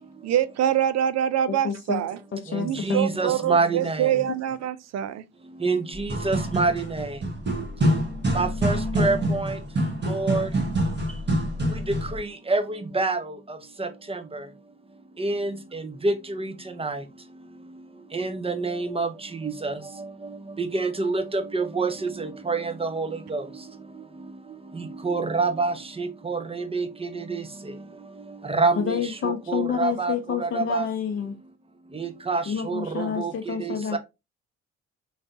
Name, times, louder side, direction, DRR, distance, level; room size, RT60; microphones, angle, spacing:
voice 1, 0.2-2.2 2.6-5.2, right 10 dB, 55° right, 0.5 m, -25 dB
voice 2, 1.5-3.0 28.8-31.4 32.5-34.0, left 7 dB, 40° left, 0.6 m, -29 dB
voice 3, 2.5-4.1 5.6-7.2 8.3-9.6 10.1-10.5 12.1-13.3 13.8-14.2 15.2-16.5 16.8-17.0 18.1-19.1 19.4-19.7 20.6-23.4 24.8-27.4 28.5-30.8 31.9-34.0, right 3 dB, 15° right, 0.8 m, -27 dB
sound 1, 5.9-12.2, right 1 dB, 30° right, 1.5 m, -26 dB
4.0 x 3.3 x 2.6 m
hypercardioid pair, 55°, 33 cm